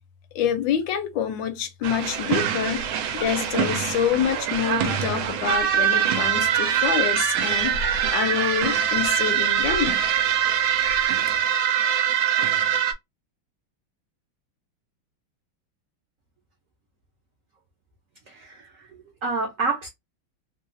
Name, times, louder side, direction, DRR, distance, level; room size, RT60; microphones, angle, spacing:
voice 1, 0.3-2.9 3.1-10.0, left 8 dB, 70° left, 1.3 m, -26 dB
sound 1, 1.8-12.9, right 9 dB, 85° right, 1.4 m, -23 dB
voice 2, 18.3-19.9, right 4 dB, 60° right, 0.9 m, -29 dB
3.4 x 2.3 x 2.6 m
omnidirectional pair, 2.2 m